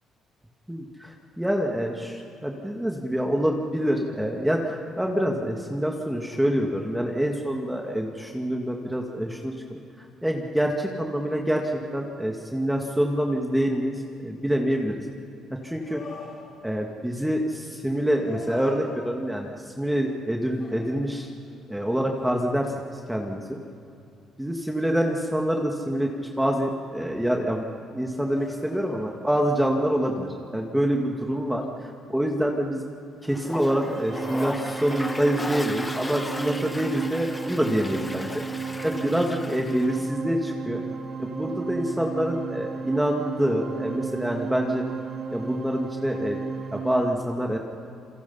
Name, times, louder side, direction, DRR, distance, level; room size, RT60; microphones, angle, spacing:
voice 1, 0.7-14.9 15.5-16.0 16.6-21.3 21.7-22.7 23.1-23.6 24.4-27.7 27.9-32.9 33.2-38.4 38.8-40.8 41.2-44.8 45.3-46.4 46.7-47.6, equal, 5° right, 1 dB, 2.1 m, -26 dB
sound 1, 15.8-16.9 18.1-19.7 20.6-21.6 22.2-22.4 28.2-29.4, left 4 dB, 50° left, 7.7 m, -42 dB
Toilet flush, 33.3-40.1, left 2 dB, 15° left, 1.3 m, -36 dB
sound 2, 33.4-47.0, right 5 dB, 55° right, 5.6 m, -34 dB
27.5 x 24.0 x 5.7 m, 2.5 s
cardioid pair, 95°, 0 cm